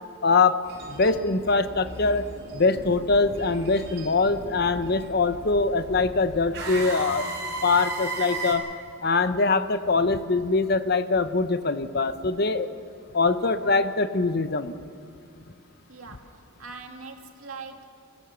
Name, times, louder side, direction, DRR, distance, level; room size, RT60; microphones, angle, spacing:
voice 1, 0.2-0.6 0.9-2.2 2.5-7.3 7.6-8.6 9.0-12.7 13.1-14.7, left 3 dB, 50° left, 11 dB, 0.8 m, -23 dB
sound 1, 0.6-8.5, right 2 dB, 55° right, 5.2 m, -36 dB
voice 2, 15.9-17.9, right 4 dB, 90° right, 3 dB, 2.2 m, -42 dB
26.5 x 16.0 x 7.0 m, 2.4 s
head